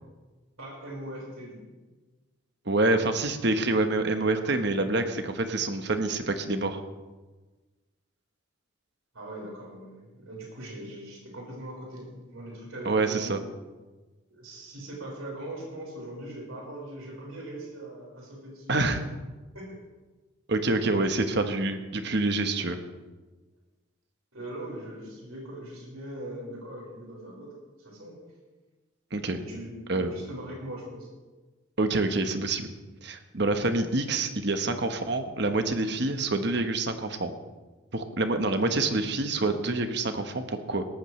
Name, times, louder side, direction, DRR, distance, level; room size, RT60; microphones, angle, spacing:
voice 1, 0.6-1.7 9.1-13.3 14.3-19.1 19.5-19.8 24.3-28.2 29.3-31.1, right 1 dB, 90° right, -2 dB, 5.0 m, -41 dB
voice 2, 2.7-6.8 12.8-13.4 18.7-19.0 20.5-22.8 29.1-29.4 29.9-30.1 31.8-32.7 33.0-37.3 37.9-40.9, right 2 dB, 55° right, 7 dB, 1.1 m, -27 dB
18.0 x 14.0 x 3.2 m, 1.2 s
head